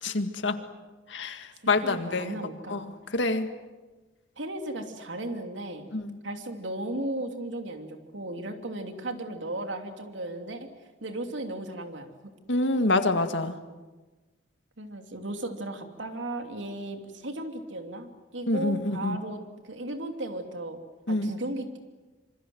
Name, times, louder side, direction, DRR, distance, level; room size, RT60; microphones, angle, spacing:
voice 1, 0.0-0.6 1.1-2.3 2.7-3.5 5.9-6.1 12.5-13.6 18.5-19.2 21.1-21.3, left 2 dB, 75° left, 8 dB, 2.0 m, -27 dB
voice 2, 1.8-2.9 4.4-10.7 11.0-12.1 14.8-20.8 21.1-21.8, right 1 dB, 90° right, 5 dB, 2.9 m, -36 dB
26.5 x 25.0 x 7.9 m, 1.2 s
head